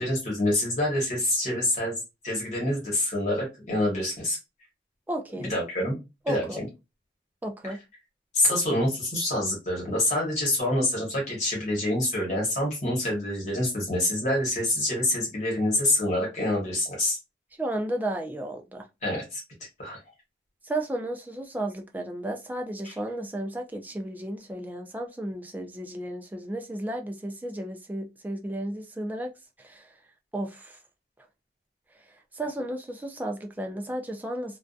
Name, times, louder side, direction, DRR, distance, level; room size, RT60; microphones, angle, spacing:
voice 1, 0.0-2.0 2.2-4.4 5.4-5.9 6.3-6.7 7.6-7.7 8.3-17.2 19.0-19.4 19.8-20.0 22.8-22.9, left 1 dB, 45° left, 1.0 m, -26 dB
voice 2, 5.1-5.5 6.3-6.6 7.4-7.8 17.6-18.9 20.6-29.3 29.6-29.9 30.3-30.8 32.3-34.6, right 1 dB, 10° right, 0.3 m, -33 dB
2.5 x 2.3 x 2.3 m
head